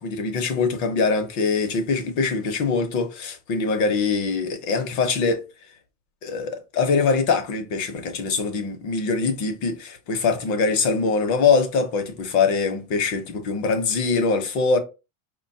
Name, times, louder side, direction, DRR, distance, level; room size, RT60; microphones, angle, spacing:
voice 1, 0.0-5.4 6.2-14.8, left 4 dB, 40° left, 0.7 m, -23 dB
5.0 x 2.2 x 2.6 m
cardioid pair, 165°, 46 cm